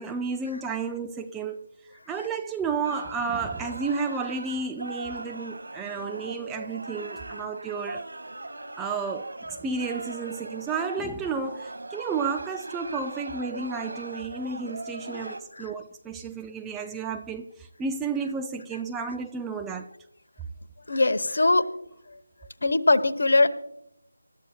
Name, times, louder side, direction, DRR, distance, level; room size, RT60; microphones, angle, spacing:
voice 1, 0.0-8.0 8.8-19.9, right 5 dB, 5° right, 0.4 m, -32 dB
sound 1, 2.8-15.4, right 2 dB, 65° right, 2.0 m, -39 dB
voice 2, 20.9-21.7 22.6-23.5, left 2 dB, 55° left, 1.1 m, -21 dB
28.0 x 13.0 x 2.3 m
figure-of-eight pair, 160°, 0 cm